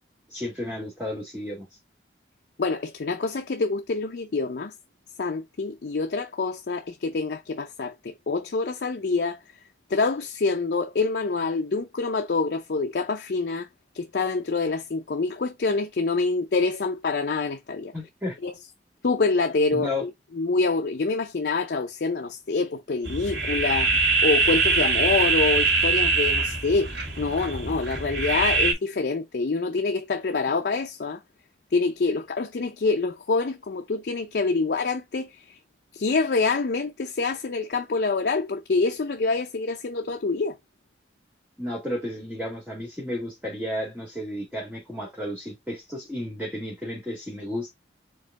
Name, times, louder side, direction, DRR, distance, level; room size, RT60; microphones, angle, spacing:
voice 1, 0.3-1.7 17.9-18.4 19.7-20.0 41.6-47.7, left 1 dB, 5° right, 1.8 m, -32 dB
voice 2, 2.6-4.7 5.2-9.4 9.9-13.7 13.9-17.9 18.4-18.5 19.0-20.1 20.4-31.2 31.7-35.6 35.9-40.5, left 3 dB, 60° left, 0.5 m, -26 dB
sound 1, 23.0-28.7, right 3 dB, 80° right, 2.1 m, -23 dB
4.7 x 2.8 x 3.6 m
head